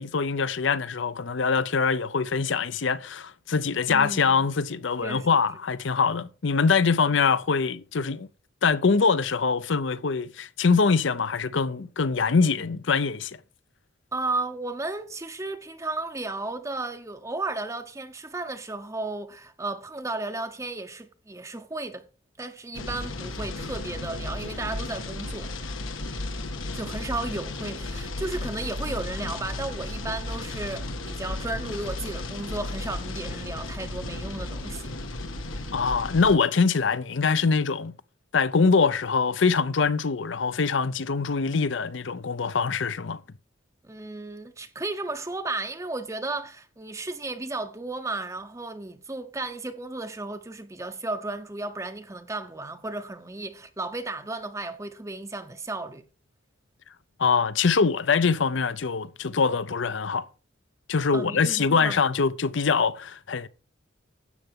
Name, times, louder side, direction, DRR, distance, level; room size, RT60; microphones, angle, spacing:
voice 1, 0.0-8.3 8.6-13.4 35.7-37.9 38.3-43.2 57.2-60.3 60.9-63.5, left 5 dB, 70° left, 0.6 m, -24 dB
voice 2, 3.9-4.5 5.0-5.4 14.1-22.1 22.4-25.5 26.7-34.9 43.8-56.0 61.1-62.0, right 2 dB, 15° right, 0.6 m, -34 dB
sound 1, 22.7-36.4, left 2 dB, 90° left, 1.7 m, -34 dB
12.0 x 7.9 x 3.6 m
head